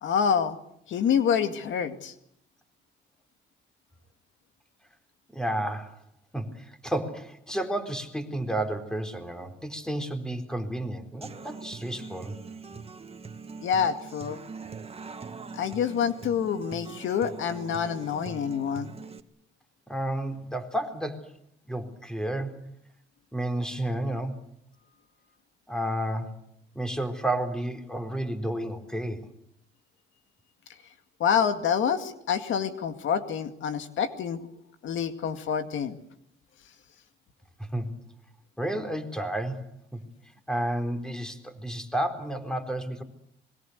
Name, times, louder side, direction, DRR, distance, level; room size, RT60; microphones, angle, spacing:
voice 1, 0.0-0.6 0.9-2.1 13.6-14.4 15.5-18.9 31.2-34.4 34.8-36.0, left 7 dB, 75° left, 8 dB, 2.1 m, -27 dB
voice 2, 5.3-6.0 6.3-12.4 19.9-21.3 21.7-22.6 23.3-24.4 25.7-26.4 26.7-29.3 37.6-37.9 38.6-40.0 40.5-43.0, right 1 dB, 5° left, 7 dB, 4.2 m, -31 dB
Human voice / Acoustic guitar, 11.2-19.2, right 5 dB, 30° right, 1.9 m, -42 dB
26.5 x 22.5 x 8.1 m, 0.72 s
cardioid pair, 90°, 20 cm